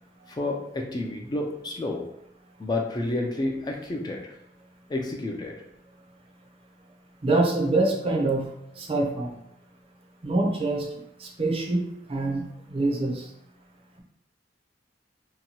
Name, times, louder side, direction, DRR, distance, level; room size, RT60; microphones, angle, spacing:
voice 1, 0.3-2.1 2.6-4.3 4.9-5.6, left 2 dB, 25° left, 1 dB, 0.3 m, -30 dB
voice 2, 7.2-8.5 8.8-9.3 10.2-10.9 11.2-11.8 12.1-12.4 12.7-13.3, right 2 dB, 30° right, 0 dB, 0.5 m, -25 dB
2.8 x 2.2 x 2.8 m, 0.80 s
head